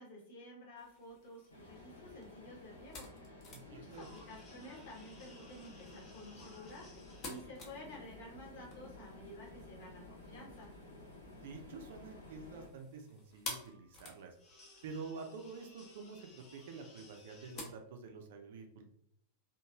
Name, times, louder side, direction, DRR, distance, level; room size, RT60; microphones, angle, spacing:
voice 1, 0.0-10.7, left 1 dB, 55° left, -3 dB, 1.2 m, -52 dB
sound 1, 0.8-17.6, left 2 dB, 30° left, 0.8 m, -53 dB
sound 2, 1.5-12.7, left 2 dB, 80° left, 0.8 m, -54 dB
voice 2, 3.5-4.1 11.3-14.4 14.8-18.9, right 4 dB, 55° right, 4 dB, 0.5 m, -48 dB
3.0 x 2.5 x 2.3 m, 0.71 s
figure-of-eight pair, 90°, 0 cm